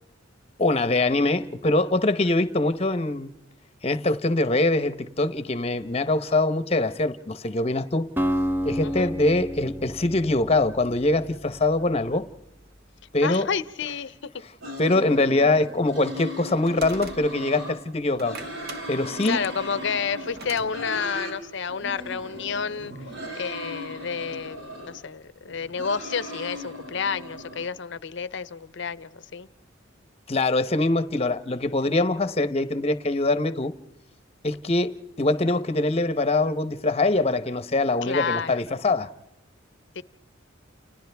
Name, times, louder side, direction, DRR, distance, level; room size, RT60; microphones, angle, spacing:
voice 1, 0.6-3.3 3.8-8.1 8.6-12.3 13.1-13.5 14.8-18.4 18.9-19.4 30.3-33.8 34.4-39.1, left 2 dB, 30° left, 0.9 m, -23 dB
Acoustic guitar, 8.2-12.3, equal, 10° right, 0.7 m, -30 dB
voice 2, 8.8-9.1 13.2-14.3 19.2-22.9 23.3-29.5 38.0-38.6 40.0-40.1, left 6 dB, 65° left, 0.7 m, -30 dB
sound 1, 14.6-17.8 18.1-21.3 21.7-25.0 25.5-27.7, equal, 85° right, 5.9 m, -38 dB
sound 2, 15.9-17.6 18.0-20.7, right 3 dB, 55° right, 1.3 m, -42 dB
29.5 x 29.5 x 3.5 m
head